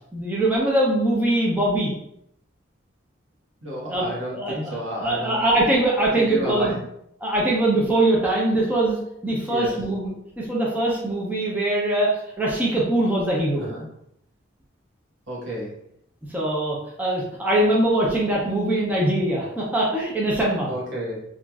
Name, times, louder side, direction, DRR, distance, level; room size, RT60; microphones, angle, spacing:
voice 1, 0.1-1.9 3.9-4.1 4.3-6.7 7.2-9.0 9.2-10.1 10.4-12.1 12.4-13.6 16.3-20.7, right 1 dB, 10° right, -4 dB, 0.5 m, -22 dB
voice 2, 3.6-5.4 6.2-6.8 9.5-9.7 13.6-13.9 15.3-15.8 20.7-21.2, right 1 dB, 85° right, -4 dB, 1.1 m, -31 dB
2.9 x 2.4 x 2.3 m, 0.74 s
head